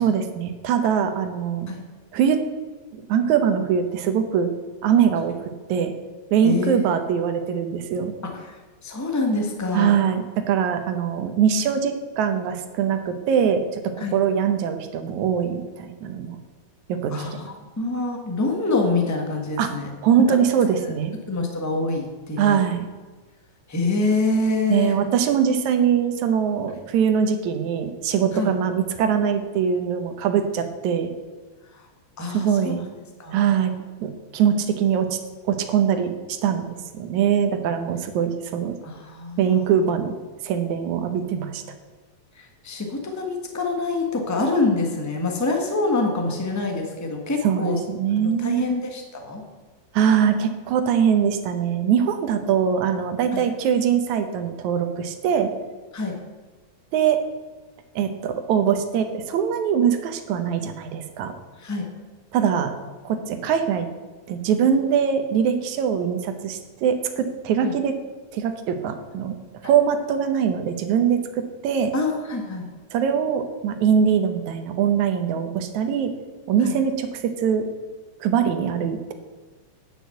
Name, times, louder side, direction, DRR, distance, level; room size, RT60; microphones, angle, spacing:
voice 1, 0.0-1.7 2.1-2.4 2.9-4.5 4.8-5.3 5.7-5.9 6.3-8.1 9.7-16.4 16.9-17.5 19.6-19.7 20.0-21.1 22.4-22.9 24.7-31.1 32.3-32.9 33.3-33.7 34.0-35.2 35.5-38.7 39.4-40.1 40.4-41.6 47.4-48.6 49.9-55.5 56.9-57.2 58.0-61.3 62.3-62.7 63.0-63.9 64.3-67.9 68.3-69.4 69.6-71.9 72.9-76.1 76.5-77.6 78.2-79.1, right 7 dB, 80° right, 8 dB, 2.3 m, -22 dB
voice 2, 6.4-6.9 8.2-10.0 14.0-14.1 17.1-19.9 20.3-20.4 21.3-22.6 23.7-25.0 28.3-28.5 31.7-31.9 32.2-32.7 33.2-33.4 38.8-39.8 42.4-47.8 48.2-49.4 53.3-53.4 55.9-56.1 61.6-61.8 67.6-67.7 71.9-72.7 76.6-76.8, left 3 dB, 15° left, 2 dB, 0.5 m, -26 dB
9.9 x 6.5 x 8.0 m, 1.4 s
omnidirectional pair, 3.3 m